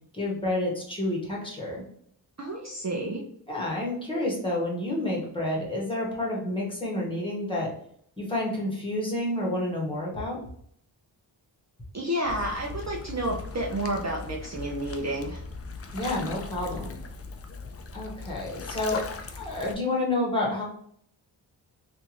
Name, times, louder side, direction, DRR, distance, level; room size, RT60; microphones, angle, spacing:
voice 1, 0.1-1.8 3.5-7.7 8.2-10.4 15.9-17.0 17.9-19.0 19.4-20.6, left 1 dB, 10° left, -3 dB, 1.5 m, -29 dB
voice 2, 2.4-3.2 11.9-15.4, right 1 dB, 35° right, -1 dB, 0.6 m, -30 dB
sound 1, 12.2-19.7, left 4 dB, 30° left, 0.5 m, -39 dB
3.4 x 2.6 x 3.0 m, 0.65 s
cardioid pair, 70°, 46 cm